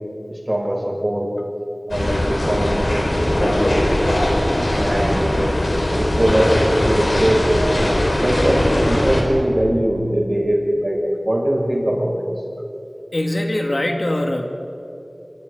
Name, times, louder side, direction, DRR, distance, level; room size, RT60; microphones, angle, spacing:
voice 1, 0.3-1.3 1.9-4.3 4.7-5.4 6.0-7.7 8.2-12.4, right 1 dB, 40° right, -2 dB, 7.0 m, -21 dB
sound 1, 1.9-9.2, left 1 dB, 80° left, 5.0 m, -20 dB
voice 2, 13.1-14.5, left 1 dB, 60° left, 3 dB, 2.4 m, -22 dB
28.0 x 23.5 x 5.2 m, 2.9 s
wide cardioid pair, 40°, 0 cm